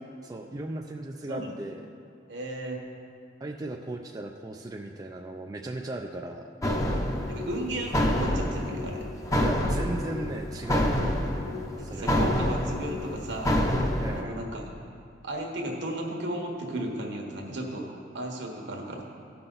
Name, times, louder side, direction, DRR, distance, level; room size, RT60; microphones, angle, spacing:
voice 1, 0.2-1.8 3.4-6.5 9.4-11.0 11.8-12.2 14.0-14.4, right 2 dB, 20° right, 2 dB, 0.3 m, -36 dB
voice 2, 2.3-2.8 7.3-9.1 11.8-13.6 14.1-14.6 15.2-19.0, right 1 dB, 65° right, 1 dB, 1.3 m, -34 dB
sound 1, 6.6-14.2, left 1 dB, 15° left, 0.7 m, -27 dB
15.0 x 5.9 x 3.9 m, 2.4 s
head